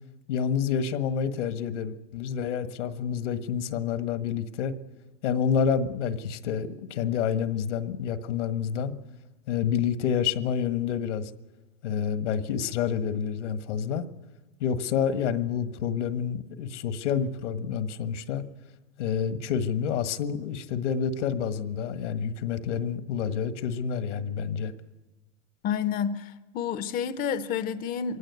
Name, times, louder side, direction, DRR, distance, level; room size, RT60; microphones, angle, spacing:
voice 1, 0.3-4.7 5.2-8.9 9.5-11.3 11.8-14.0 14.6-18.4 19.0-24.7, left 7 dB, 75° left, 1.6 m, -28 dB
voice 2, 25.6-28.2, left 8 dB, 25° left, 0.7 m, -29 dB
22.5 x 17.0 x 9.6 m
supercardioid pair, 135°, 36 cm